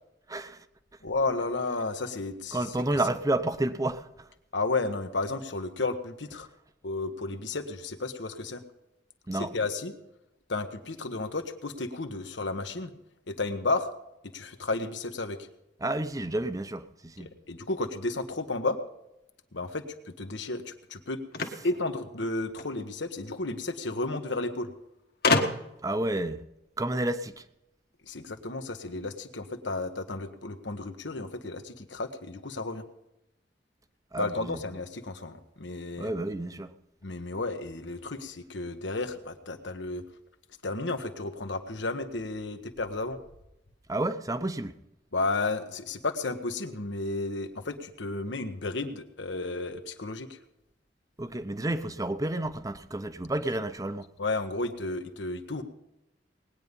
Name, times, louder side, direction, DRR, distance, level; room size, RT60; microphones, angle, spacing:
voice 1, 0.3-0.7 2.5-4.3 9.3-9.5 15.8-17.3 25.8-26.4 26.8-27.4 34.1-34.6 36.0-36.8 43.9-44.8 51.2-54.1, right 1 dB, 20° right, 0.7 m, -30 dB
voice 2, 1.0-2.6 4.5-6.5 6.8-8.6 9.5-9.9 10.5-12.9 13.3-13.9 14.3-15.4 17.2-18.8 19.5-21.2 21.6-24.7 28.0-32.8 34.2-36.1 37.0-40.0 40.6-43.2 45.1-50.3 54.2-55.6, left 3 dB, 85° left, 1.3 m, -32 dB
sound 1, 21.3-22.7 23.8-23.9 24.2-24.3 25.2-25.9, left 3 dB, 55° left, 1.4 m, -27 dB
19.5 x 9.7 x 5.3 m
head